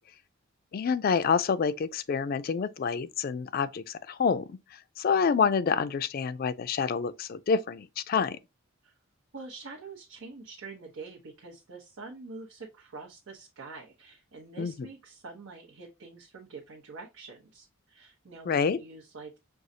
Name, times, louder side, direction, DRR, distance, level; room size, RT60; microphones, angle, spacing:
voice 1, 0.7-4.6 5.0-8.4 14.6-14.9 18.5-18.8, left 6 dB, 45° left, 0.3 m, -27 dB
voice 2, 9.3-19.4, right 3 dB, 90° right, 0.9 m, -46 dB
6.2 x 2.3 x 2.7 m
head